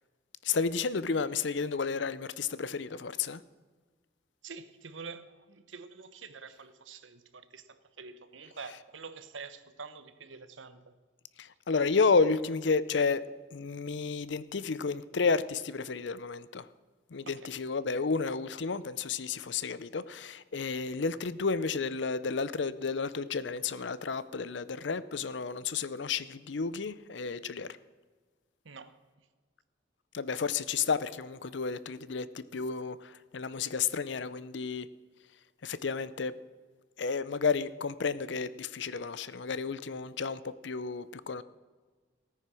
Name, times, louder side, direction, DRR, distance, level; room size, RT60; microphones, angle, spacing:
voice 1, 0.4-3.4 8.6-8.8 11.4-13.2 13.5-16.7 17.1-27.7 30.1-34.9 35.6-36.3 37.0-41.4, left 5 dB, 70° left, 0.6 m, -31 dB
voice 2, 4.4-10.9 17.2-17.5 28.6-29.0, right 5 dB, 90° right, 1.0 m, -47 dB
17.0 x 9.3 x 6.2 m
head